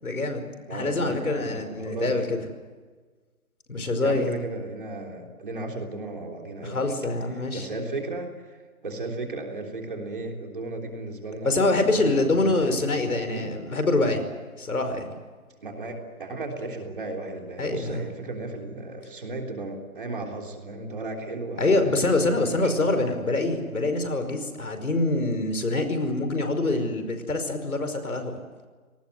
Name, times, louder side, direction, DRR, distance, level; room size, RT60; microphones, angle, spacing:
voice 1, 0.0-2.4 3.7-4.4 6.6-7.7 11.4-14.3 14.6-15.1 17.6-18.0 21.6-28.4, left 2 dB, 80° left, 7 dB, 5.1 m, -25 dB
voice 2, 0.7-2.3 4.0-6.9 7.5-11.7 12.1-12.5 12.9-13.5 15.6-22.5 22.8-22.9, right 2 dB, 35° right, 2 dB, 3.5 m, -35 dB
29.5 x 19.0 x 8.1 m, 1.4 s
hypercardioid pair, 180°, 43 cm